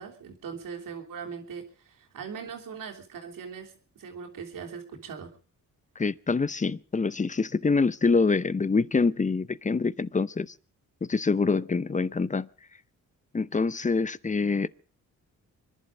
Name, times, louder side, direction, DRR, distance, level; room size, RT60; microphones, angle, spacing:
voice 1, 0.0-5.3, right 6 dB, 75° right, 3.3 m, -40 dB
voice 2, 6.0-10.5 11.0-12.5 13.3-14.7, left 4 dB, 25° left, 0.7 m, -25 dB
25.0 x 11.0 x 5.0 m
cardioid pair, 60°, 33 cm